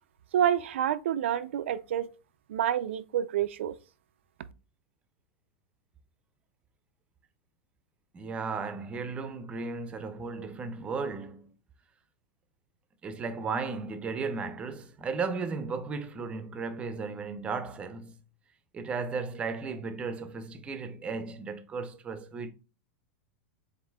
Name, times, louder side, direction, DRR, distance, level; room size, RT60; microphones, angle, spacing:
voice 1, 0.3-2.1 2.5-3.7, right 10 dB, 85° right, 0.4 m, -28 dB
voice 2, 8.1-11.5 13.0-18.2 18.7-22.5, right 4 dB, 20° right, 0.6 m, -35 dB
7.3 x 2.6 x 2.2 m
supercardioid pair, 140°, 6 cm